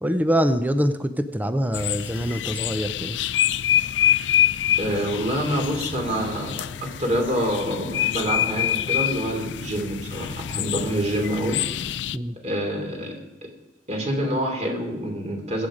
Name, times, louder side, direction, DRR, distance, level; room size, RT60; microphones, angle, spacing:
voice 1, 0.0-3.2 12.1-12.4, equal, 10° right, 9 dB, 0.6 m, -24 dB
sound 1, 1.7-12.2, left 11 dB, 70° left, 0.4 m, -26 dB
voice 2, 4.8-11.6 12.4-13.1 13.9-15.7, equal, 40° right, 2 dB, 3.2 m, -26 dB
21.0 x 8.7 x 5.0 m, 1.0 s
head